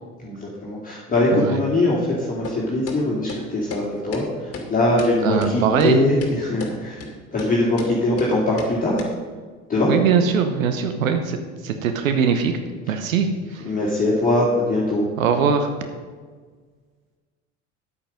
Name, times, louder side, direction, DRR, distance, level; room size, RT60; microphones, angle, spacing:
voice 1, 0.2-7.0 7.3-9.1 9.7-9.9 13.6-15.1, left 1 dB, 20° left, -6 dB, 2.6 m, -22 dB
sound 1, 2.4-2.6 2.9-3.0 3.3-3.4 3.7-3.8 4.1-4.2 4.5-4.7 5.0-5.1 5.4-5.5 5.8-5.9 6.2-6.3 6.6-6.7 7.0-7.1 7.4-7.5 7.8-7.9 8.2-8.3 8.6-8.7 9.0-9.1, left 4 dB, 35° left, 2.3 m, -33 dB
voice 2, 5.2-6.0 9.9-12.5 12.9-13.7 15.2-15.7, right 6 dB, 70° right, 7 dB, 1.0 m, -21 dB
10.0 x 8.9 x 5.2 m, 1.5 s
figure-of-eight pair, 65°, 41 cm